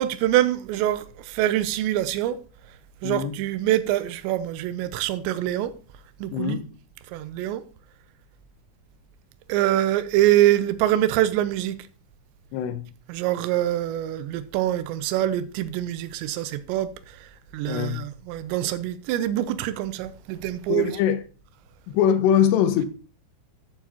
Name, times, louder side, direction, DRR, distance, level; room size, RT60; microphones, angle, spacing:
voice 1, 0.0-2.4 3.0-5.7 6.2-6.6 7.1-7.6 9.5-11.8 13.1-20.9, right 13 dB, 85° right, 2.8 m, -24 dB
voice 2, 3.0-3.4 6.3-6.7 12.5-12.9 17.7-18.1 20.7-21.2 21.9-22.9, left 9 dB, 75° left, 2.8 m, -22 dB
13.5 x 7.2 x 2.9 m
omnidirectional pair, 5.4 m